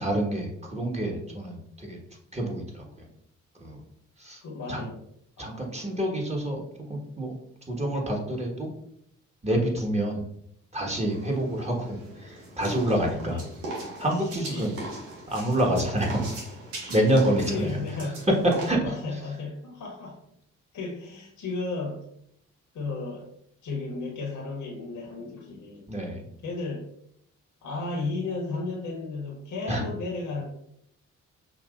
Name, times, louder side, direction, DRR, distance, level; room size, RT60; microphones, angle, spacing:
voice 1, 0.0-2.0 2.3-3.1 3.6-3.8 4.2-4.4 4.7-4.8 5.4-6.6 6.9-7.3 7.7-8.7 9.4-10.2 10.7-13.4 13.8-14.8 15.3-16.3 16.9-17.7 18.7-18.8 25.9-26.2 29.7-29.8, right 1 dB, 20° right, 0 dB, 1.6 m, -27 dB
voice 2, 4.4-5.0 5.4-6.0 13.3-13.4 14.5-14.7 17.4-18.2 18.8-20.2 20.7-22.1 22.7-23.3 23.6-25.9 26.4-26.9 27.6-30.5, left 3 dB, 55° left, -2 dB, 1.3 m, -34 dB
sound 1, 10.9-18.7, right 2 dB, 85° right, 1.0 m, -40 dB
6.0 x 2.7 x 2.5 m, 0.70 s
hypercardioid pair, 45°, 36 cm